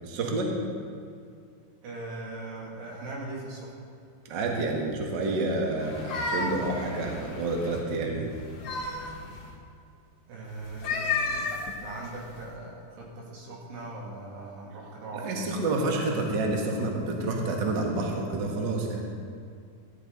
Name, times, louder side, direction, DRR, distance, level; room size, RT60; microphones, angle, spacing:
voice 1, 0.0-0.5 4.3-8.3 15.1-19.0, right 2 dB, 55° right, 0 dB, 1.2 m, -29 dB
voice 2, 1.8-3.8 10.3-15.5, right 2 dB, 90° right, -3 dB, 4.5 m, -40 dB
sound 1, 5.8-7.8 8.3-9.5 10.6-12.5, left 3 dB, 55° left, 1.8 m, -33 dB
15.0 x 11.5 x 4.0 m, 2.4 s
omnidirectional pair, 4.6 m